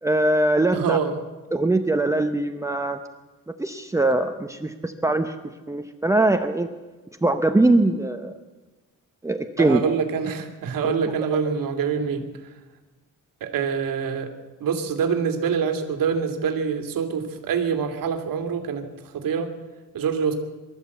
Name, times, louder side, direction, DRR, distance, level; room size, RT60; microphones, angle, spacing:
voice 1, 0.0-1.0 1.5-3.0 3.6-5.3 5.7-6.7 7.2-8.4 9.2-9.8 10.8-10.9, right 2 dB, 10° right, 6 dB, 0.7 m, -21 dB
voice 2, 0.7-1.2 9.6-12.3 13.4-14.3 14.6-19.5 19.9-20.3, right 6 dB, 90° right, 5 dB, 2.5 m, -25 dB
24.0 x 13.0 x 8.3 m, 1.2 s
wide cardioid pair, 165°, 33 cm